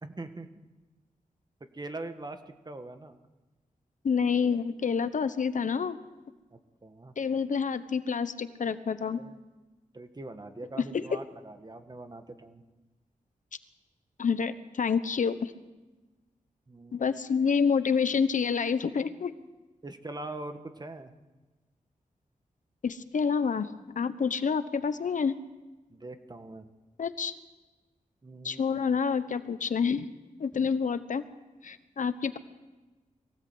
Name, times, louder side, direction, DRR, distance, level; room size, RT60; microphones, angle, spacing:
voice 1, 0.0-0.5 1.7-3.2 6.5-7.1 9.1-9.4 9.9-12.6 16.7-17.2 19.8-21.1 25.9-26.7 28.2-28.6 30.5-30.7, right 2 dB, 30° right, 8 dB, 1.7 m, -42 dB
voice 2, 4.0-6.0 7.2-9.2 10.8-11.0 14.2-15.5 16.9-19.3 22.8-23.7 23.9-25.3 27.0-27.3 28.4-30.0 30.4-31.2 31.6-32.4, left 6 dB, 65° left, 12 dB, 1.1 m, -28 dB
22.5 x 17.0 x 8.1 m, 1.2 s
wide cardioid pair, 85°, 14 cm